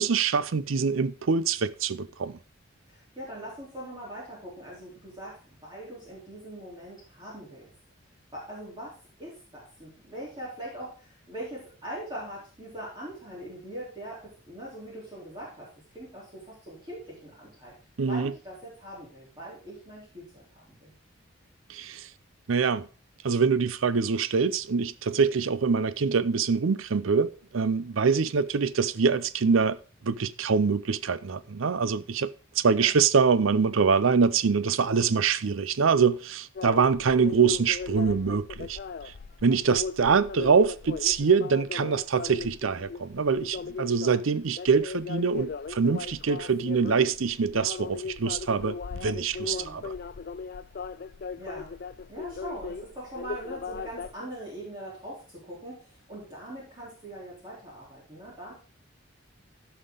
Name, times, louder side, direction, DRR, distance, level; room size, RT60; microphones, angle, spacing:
voice 1, 0.0-2.4 18.0-18.3 21.7-22.1 22.5-22.9 23.2-29.8 30.0-38.8 39.4-49.9, right 5 dB, 80° right, 0.6 m, -24 dB
voice 2, 2.9-7.7 8.3-17.7 18.0-20.9 32.7-33.0 49.4-49.9 51.4-51.8 52.1-58.5, right 1 dB, 25° right, 3.7 m, -42 dB
sound 1, 36.5-54.1, left 5 dB, 50° left, 0.4 m, -38 dB
15.0 x 5.7 x 3.9 m
head